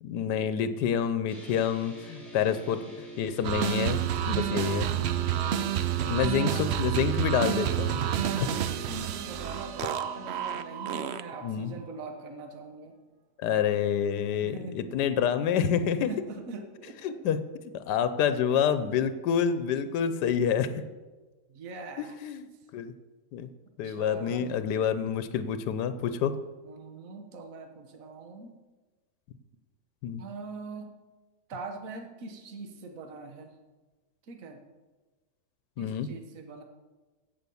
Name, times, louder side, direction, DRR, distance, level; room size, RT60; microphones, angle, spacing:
voice 1, 0.0-2.8 3.2-4.0 4.3-4.9 6.1-8.0 8.4-8.5 11.4-11.7 13.4-16.1 17.0-17.4 17.7-20.8 22.0-22.4 22.7-22.9 23.3-23.5 23.8-26.3 30.0-30.2 35.8-36.1, left 8 dB, 85° left, 11 dB, 1.3 m, -27 dB
sound 1, 1.3-8.9, right 3 dB, 10° left, 3.2 m, -44 dB
voice 2, 2.2-2.7 4.1-6.6 8.1-13.0 14.4-14.8 16.1-17.2 21.5-22.2 23.8-24.5 26.6-28.6 30.2-30.9 31.5-33.6 34.2-34.6 35.8-36.6, right 3 dB, 55° right, 4 dB, 1.6 m, -43 dB
sound 2, 3.4-11.5, right 10 dB, 85° right, 0.5 m, -29 dB
16.0 x 5.7 x 7.0 m, 1.3 s
omnidirectional pair, 1.7 m